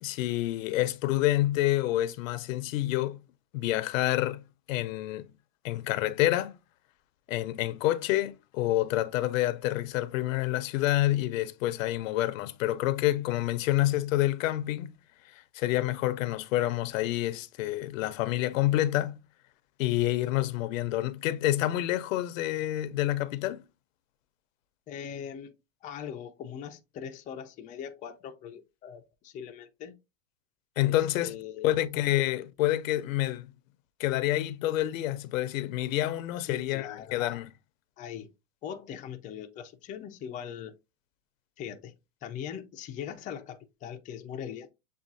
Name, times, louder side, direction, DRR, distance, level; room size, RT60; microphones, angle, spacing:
voice 1, 0.0-3.2 3.5-4.4 4.7-5.3 5.6-6.6 7.3-14.9 15.5-19.2 19.8-23.6 30.8-31.4 31.6-33.5 34.0-37.5, left 15 dB, 80° left, 0.6 m, -28 dB
voice 2, 24.9-29.9 30.8-31.9 36.4-37.2 38.0-38.3 38.6-40.7 41.6-41.9 42.2-44.7, left 8 dB, 20° left, 0.4 m, -41 dB
7.1 x 2.4 x 2.6 m
supercardioid pair, 140°, 40 cm